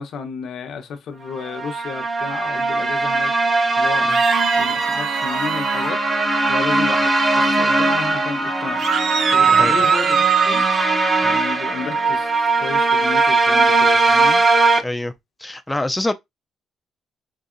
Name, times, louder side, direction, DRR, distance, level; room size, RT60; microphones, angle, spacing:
voice 1, 0.0-3.3 3.8-4.1 4.6-6.0 6.5-8.8 9.3-10.6 11.2-14.4, left 6 dB, 70° left, 0.8 m, -32 dB
sound 1, 1.4-14.8, right 3 dB, 25° right, 0.7 m, -19 dB
sound 2, 4.1-5.9 8.8-10.9, right 7 dB, 65° right, 0.5 m, -20 dB
voice 2, 9.4-9.8 11.2-11.4 14.8-15.1 15.4-16.1, left 1 dB, 10° left, 0.4 m, -25 dB
4.0 x 2.6 x 2.5 m
cardioid pair, 90°, 0 cm